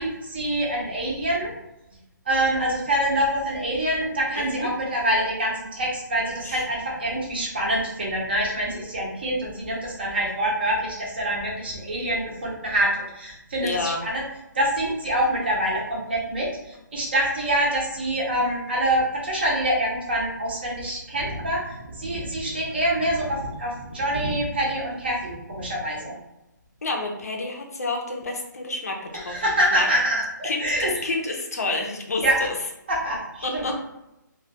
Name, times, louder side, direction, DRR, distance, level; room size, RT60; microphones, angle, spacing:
voice 1, 0.0-1.5 2.3-14.2 14.5-26.2 29.1-30.9 32.2-32.3 32.9-33.6, right 1 dB, 30° right, -3 dB, 0.6 m, -25 dB
voice 2, 4.4-4.7 6.4-6.6 13.6-14.0 26.8-29.0 29.2-29.9 30.4-32.5 33.4-33.7, left 2 dB, 50° left, 1 dB, 0.5 m, -29 dB
2.2 x 2.2 x 2.7 m, 0.89 s
hypercardioid pair, 180°, 11 cm